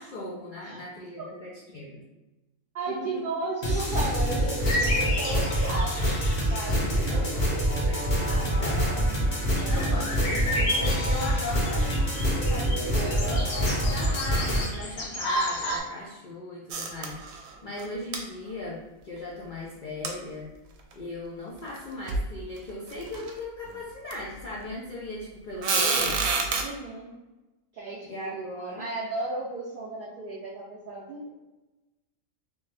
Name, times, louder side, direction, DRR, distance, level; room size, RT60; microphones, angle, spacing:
voice 1, 0.0-2.0 2.9-3.2 6.7-7.3 7.9-8.8 9.7-12.0 12.3-20.5 20.9-26.2 28.1-28.8, left 2 dB, 55° left, -5 dB, 0.5 m, -38 dB
voice 2, 2.7-7.4 7.8-9.0 9.5-10.0 26.6-27.1 27.7-31.3, right 3 dB, 55° right, -5 dB, 0.6 m, -35 dB
sound 1, 3.6-14.7, equal, 35° left, 0.9 m, -26 dB
sound 2, 4.6-15.8, left 1 dB, 90° left, 1.2 m, -33 dB
sound 3, 16.7-17.5 17.8-17.9 18.1-18.2 20.0-20.1 20.9-21.0 21.8-21.9 22.1-22.3 22.9-23.3 24.1-24.2 25.6-26.6, right 4 dB, 80° right, 1.0 m, -27 dB
3.2 x 2.7 x 3.3 m, 1.1 s
omnidirectional pair, 1.4 m